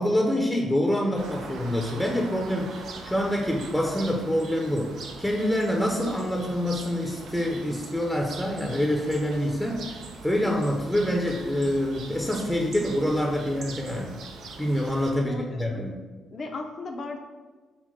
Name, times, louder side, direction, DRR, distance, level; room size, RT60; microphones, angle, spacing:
voice 1, 0.0-14.2 14.6-16.0, equal, 5° left, 0 dB, 0.7 m, -26 dB
sound 1, 1.2-15.1, right 4 dB, 60° right, 0.6 m, -42 dB
voice 2, 15.2-15.8 16.3-17.2, left 2 dB, 45° left, 2 dB, 0.7 m, -36 dB
5.9 x 2.1 x 4.2 m, 1.3 s
hypercardioid pair, 45°, 0 cm